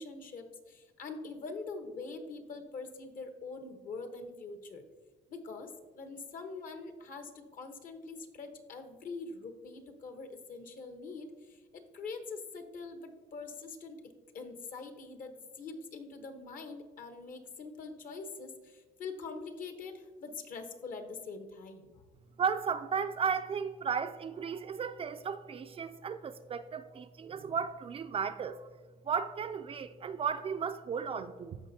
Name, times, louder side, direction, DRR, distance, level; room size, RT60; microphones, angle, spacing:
voice 1, 0.0-4.8 5.3-21.9, left 4 dB, 55° left, 1.1 m, -44 dB
voice 2, 22.4-28.7 29.1-31.6, right 6 dB, 35° right, 0.4 m, -35 dB
14.5 x 5.1 x 2.8 m
cardioid pair, 110°, 17 cm